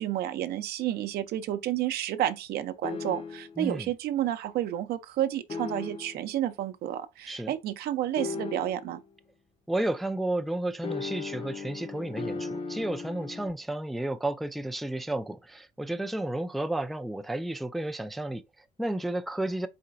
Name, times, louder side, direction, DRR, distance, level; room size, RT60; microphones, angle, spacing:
voice 1, 0.0-9.0, right 12 dB, 70° right, 0.6 m, -30 dB
sound 1, 2.8-3.6 5.5-6.3 8.2-9.0 10.8-13.5, left 4 dB, 35° left, 0.6 m, -37 dB
voice 2, 3.6-3.9 7.3-7.5 9.7-19.7, right 1 dB, ahead, 0.3 m, -32 dB
4.2 x 3.8 x 2.5 m
cardioid pair, 110°, 17 cm